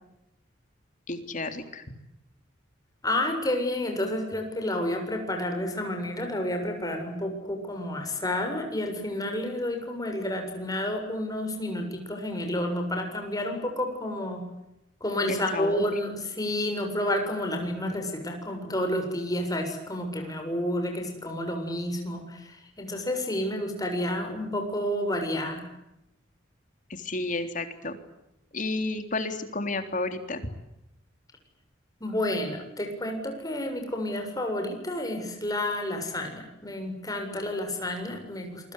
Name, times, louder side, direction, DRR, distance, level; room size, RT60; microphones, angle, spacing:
voice 1, 1.1-1.8 15.3-15.9 26.9-28.0 28.5-30.5, left 2 dB, 40° left, 8 dB, 3.5 m, -31 dB
voice 2, 3.0-14.5 15.0-25.7 32.0-38.7, left 1 dB, 20° left, 4 dB, 7.4 m, -30 dB
27.5 x 24.0 x 8.3 m, 0.86 s
head